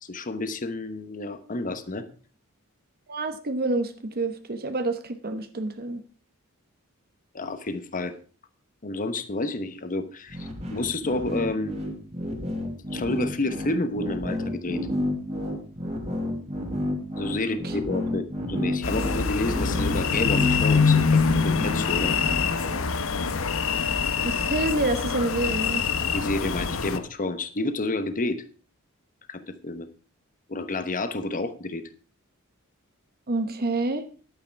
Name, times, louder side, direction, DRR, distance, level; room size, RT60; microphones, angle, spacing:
voice 1, 0.0-2.1 7.3-8.1 8.8-11.7 12.9-14.8 17.2-22.2 26.1-28.4 29.3-29.9 30.5-31.8, left 2 dB, 40° left, 10 dB, 1.0 m, -30 dB
voice 2, 3.1-6.0 17.6-17.7 24.2-25.8 33.3-34.0, right 2 dB, 45° right, 9 dB, 1.0 m, -28 dB
sound 1, 10.3-22.9, left 1 dB, 30° right, 2.5 m, -31 dB
sound 2, 18.8-27.0, left 5 dB, 65° left, 0.9 m, -24 dB
11.5 x 9.0 x 4.6 m, 0.39 s
head